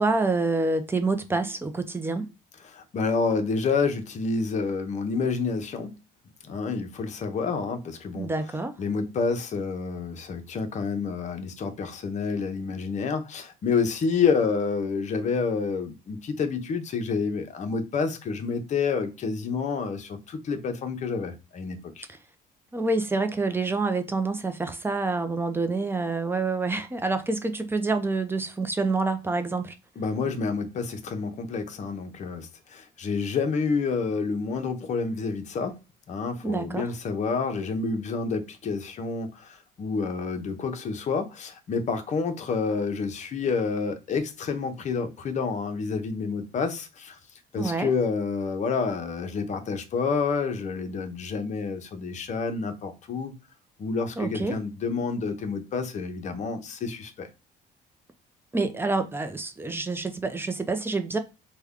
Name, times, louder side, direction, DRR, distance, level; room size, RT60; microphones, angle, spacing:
voice 1, 0.0-2.3 8.1-8.8 22.7-29.7 36.4-36.8 47.6-47.9 54.2-54.6 58.5-61.2, right 3 dB, 15° right, 0.5 m, -27 dB
voice 2, 2.6-5.9 6.4-8.3 8.8-22.1 30.0-35.8 36.1-47.2 47.5-53.3 53.8-57.3, left 5 dB, 45° left, 0.7 m, -29 dB
3.3 x 2.2 x 3.5 m
cardioid pair, 110°, 17 cm